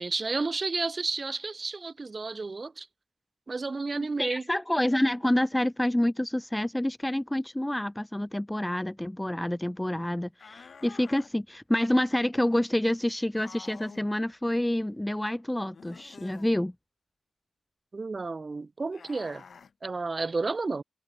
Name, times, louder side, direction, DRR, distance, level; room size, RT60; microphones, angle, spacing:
voice 1, 0.0-2.9 3.5-4.4 17.9-19.4 19.8-20.8, right 3 dB, 40° right, 1.1 m, -31 dB
voice 2, 4.0-16.7, left 1 dB, 10° left, 0.4 m, -28 dB
sound 1, 10.4-11.3 13.3-14.1 15.7-16.6 18.9-19.7, left 6 dB, 65° left, 4.3 m, -49 dB
wide cardioid pair, 85°, 0 cm